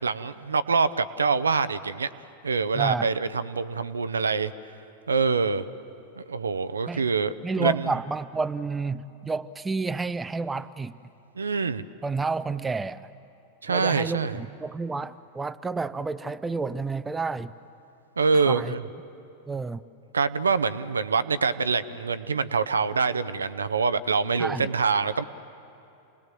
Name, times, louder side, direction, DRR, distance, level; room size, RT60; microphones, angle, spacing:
voice 1, 0.0-2.1 2.4-4.5 5.1-5.7 6.2-7.9 11.4-11.8 13.6-14.4 18.2-18.8 20.1-25.2, right 4 dB, 75° right, 13 dB, 0.6 m, -25 dB
voice 2, 2.7-3.1 6.9-7.0 7.4-11.0 12.0-13.0 13.7-17.5 18.5-18.7 19.5-19.8 24.4-24.7, right 4 dB, 10° right, 12 dB, 0.5 m, -30 dB
28.5 x 19.5 x 7.7 m, 2.8 s
figure-of-eight pair, 90°, 0 cm